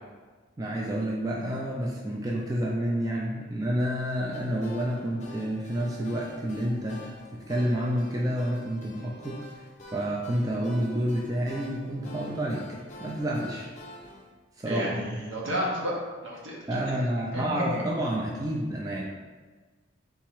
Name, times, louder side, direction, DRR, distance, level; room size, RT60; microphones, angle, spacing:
voice 1, 0.6-9.6 9.9-12.6 13.0-13.7 14.6-15.2 16.7-19.0, equal, 15° right, -2 dB, 0.3 m, -29 dB
sound 1, 4.3-14.3, equal, 35° left, 0.6 m, -47 dB
voice 2, 14.7-16.6 17.3-17.8, equal, 70° right, -4 dB, 1.1 m, -31 dB
3.6 x 3.0 x 4.5 m, 1.4 s
head